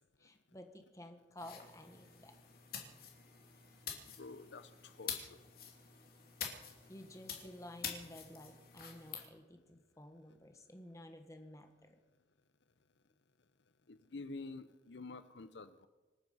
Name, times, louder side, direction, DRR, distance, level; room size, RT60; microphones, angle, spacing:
voice 1, 0.2-2.4 6.5-12.0, left 1 dB, 15° left, 6 dB, 1.5 m, -53 dB
sound 1, 1.4-9.3, left 7 dB, 50° left, 2.8 m, -47 dB
voice 2, 4.1-5.4 13.9-15.9, left 3 dB, 70° left, 12 dB, 0.7 m, -49 dB
26.5 x 9.5 x 5.5 m, 1.2 s
head